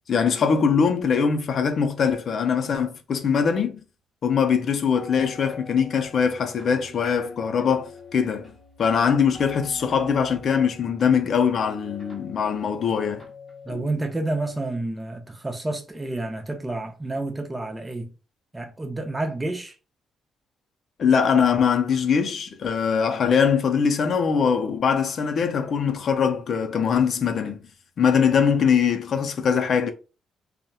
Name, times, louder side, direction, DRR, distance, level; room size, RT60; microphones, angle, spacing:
voice 1, 0.1-3.8 4.2-8.5 8.8-13.2 13.7-13.9 21.0-27.6 28.0-29.9, left 6 dB, 55° left, 0.4 m, -22 dB
sound 1, 4.9-13.7, left 3 dB, 5° left, 0.9 m, -44 dB
voice 2, 13.6-18.1 18.5-19.8, right 2 dB, 15° right, 0.5 m, -29 dB
2.8 x 2.1 x 2.2 m
cardioid pair, 90°, 0 cm